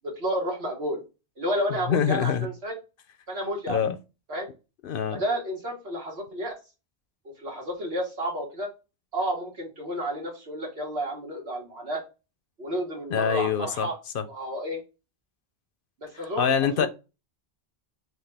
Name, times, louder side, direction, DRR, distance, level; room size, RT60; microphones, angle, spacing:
voice 1, 0.0-1.0 1.4-2.7 3.3-3.8 4.3-4.5 5.1-6.6 7.4-8.7 9.1-12.0 12.6-14.0 14.3-14.8 16.0-16.9, equal, 80° right, 1.9 m, -31 dB
voice 2, 1.9-2.5 3.7-3.9 4.8-5.2 13.1-13.9 14.1-14.2 16.4-16.9, left 7 dB, 65° left, 0.7 m, -24 dB
6.0 x 2.5 x 3.4 m
omnidirectional pair, 1.1 m